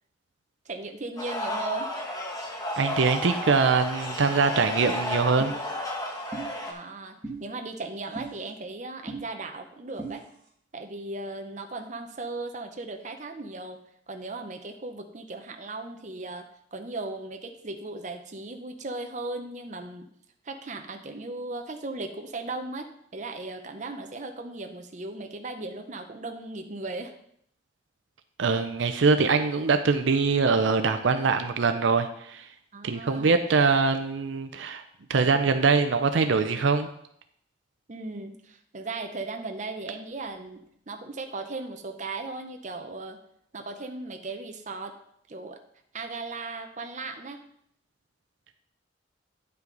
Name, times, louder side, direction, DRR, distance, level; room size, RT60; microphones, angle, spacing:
voice 1, 0.7-1.9 6.7-10.2 10.7-13.8 14.1-16.5 16.7-20.1 20.4-27.1 32.7-33.3 37.9-43.2 43.5-44.9 45.3-45.6 45.9-47.4, right 3 dB, 40° right, 5 dB, 0.7 m, -37 dB
sound 1, 1.2-6.7, left 1 dB, 20° left, 1.1 m, -32 dB
voice 2, 2.8-5.5 28.4-32.5 32.8-34.8 35.1-36.9, right 4 dB, 75° right, 8 dB, 0.5 m, -23 dB
sound 2, 5.4-5.6 6.3-6.5 7.2-7.4 8.2-8.3 9.1-9.2 10.0-10.1, right 3 dB, 20° right, 2.1 m, -35 dB
9.2 x 5.7 x 3.9 m, 0.70 s
head